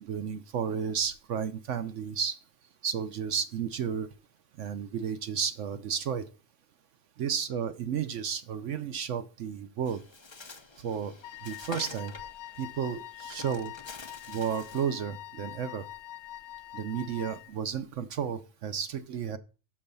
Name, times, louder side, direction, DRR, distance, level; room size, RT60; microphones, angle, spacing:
voice 1, 0.0-2.4 2.8-4.1 4.6-6.3 7.2-10.0 10.8-12.1 12.6-13.7 14.3-15.8 16.7-19.4, right 7 dB, 65° right, 12 dB, 0.9 m, -32 dB
Bird, 9.9-15.0, left 3 dB, 30° left, 0.5 m, -47 dB
Wind instrument woodwind instrument, 11.2-17.6, left 13 dB, 70° left, 1.0 m, -44 dB
6.3 x 5.5 x 6.7 m, 0.34 s
omnidirectional pair, 1.6 m